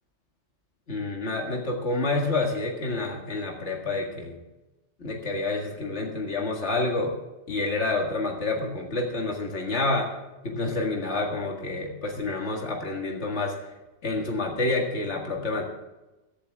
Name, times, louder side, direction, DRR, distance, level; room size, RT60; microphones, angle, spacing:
voice 1, 0.9-4.4 5.0-7.2 7.5-10.1 10.4-13.6 14.0-15.7, left 2 dB, 75° left, 1 dB, 2.2 m, -28 dB
16.0 x 12.0 x 3.6 m, 1.1 s
omnidirectional pair, 1.2 m